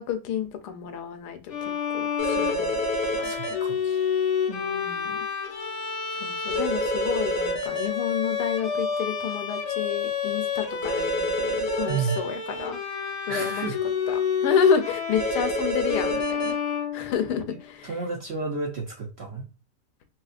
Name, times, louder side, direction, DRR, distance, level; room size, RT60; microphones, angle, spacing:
voice 1, 0.0-3.3 3.6-3.7 4.5-5.2 6.1-12.8 13.3-13.7 14.1-16.6 16.9-17.9, left 7 dB, 85° left, 8 dB, 1.2 m, -29 dB
Bowed string instrument, 1.5-17.6, left 6 dB, 60° left, 0.8 m, -29 dB
sound 1, 2.2-3.5 6.5-7.9 10.8-12.2 15.1-16.5, equal, 15° left, 0.8 m, -28 dB
voice 2, 3.2-3.8 11.9-12.2 13.3-13.8 14.4-14.5 17.5-19.5, right 4 dB, 60° right, 0 dB, 0.7 m, -32 dB
3.1 x 2.8 x 2.4 m, 0.32 s
omnidirectional pair, 1.7 m